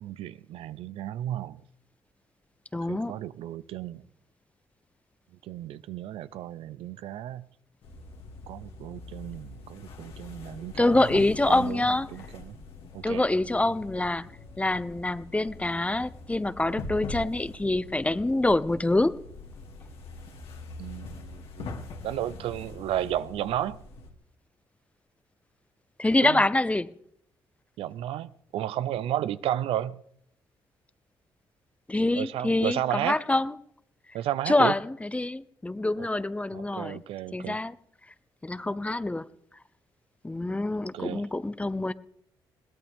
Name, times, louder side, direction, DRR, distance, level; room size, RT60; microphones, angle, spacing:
voice 1, 0.0-1.6 2.9-4.0 5.4-7.4 8.5-12.6 12.9-13.3 20.8-21.7 22.0-23.8 26.2-26.4 27.8-30.0 32.2-33.2 34.1-34.7 36.5-37.6 40.9-41.3, right 12 dB, 80° right, 0.6 m, -33 dB
voice 2, 2.7-3.1 10.8-12.1 13.0-14.3 14.6-19.2 26.0-26.9 31.9-33.6 34.5-37.0 37.3-37.7 38.4-39.3 40.2-41.9, left 2 dB, 15° left, 0.7 m, -26 dB
sound 1, 7.8-24.1, left 3 dB, 75° left, 2.6 m, -43 dB
21.5 x 17.5 x 3.6 m
cardioid pair, 75°, 9 cm